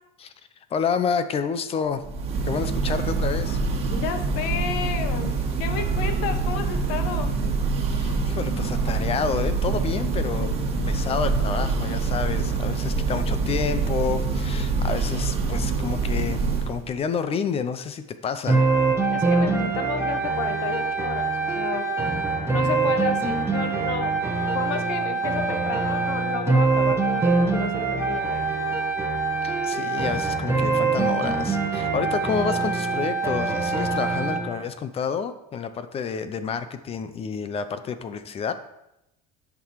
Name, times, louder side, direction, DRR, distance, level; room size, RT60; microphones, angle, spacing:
voice 1, 0.7-2.0 2.4-3.6 8.0-10.6 10.9-18.6 29.4-38.5, left 6 dB, 30° left, 11 dB, 0.7 m, -29 dB
Church bell, 2.0-16.9, right 4 dB, 30° right, 1.7 m, -25 dB
voice 2, 3.9-7.4 19.1-21.9 22.5-24.2 24.5-28.5, left 8 dB, 75° left, 9 dB, 1.1 m, -32 dB
sound 1, 18.5-34.5, right 3 dB, 15° right, 1.3 m, -24 dB
10.5 x 6.1 x 4.7 m, 0.87 s
cardioid pair, 135°, 20 cm